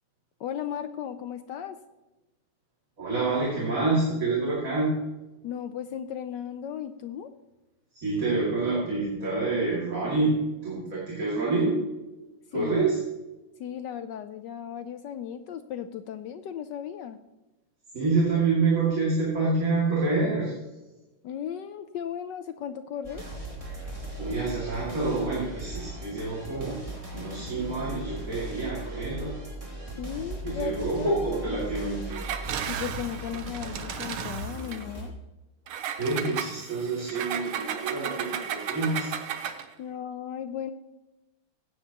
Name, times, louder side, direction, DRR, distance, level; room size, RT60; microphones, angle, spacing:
voice 1, 0.4-1.8 5.4-7.3 12.5-12.7 13.6-17.2 21.2-23.2 30.0-31.6 32.7-35.1 39.8-40.7, left 9 dB, 80° left, 9 dB, 1.0 m, -36 dB
voice 2, 3.0-4.9 7.9-10.4 10.6-11.8 12.5-13.0 17.9-20.5 24.2-26.8 27.1-29.3 30.4-32.2 36.0-39.1, right 3 dB, 40° right, -5 dB, 2.8 m, -27 dB
sound 1, 23.0-35.1, right 1 dB, 15° right, 2.5 m, -38 dB
Engine, 32.1-34.8 35.7-39.7, right 8 dB, 80° right, 1.7 m, -34 dB
16.0 x 9.2 x 2.9 m, 1.1 s
omnidirectional pair, 2.4 m